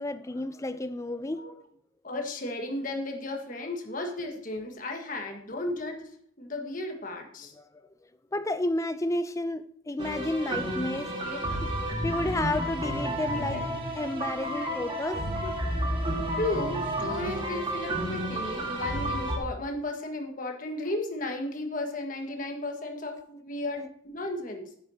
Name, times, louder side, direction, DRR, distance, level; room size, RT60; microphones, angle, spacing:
voice 1, 0.0-1.5 7.5-7.7 8.3-11.7 12.0-13.6 14.0-15.2, left 2 dB, 15° left, 0.4 m, -31 dB
voice 2, 2.0-6.1 6.4-7.5 11.2-11.4 13.3-13.7 14.6-15.5 16.4-24.7, left 2 dB, 45° left, 1.5 m, -34 dB
sound 1, 10.0-19.4, right 1 dB, 25° right, 1.7 m, -31 dB
10.5 x 9.8 x 2.8 m
head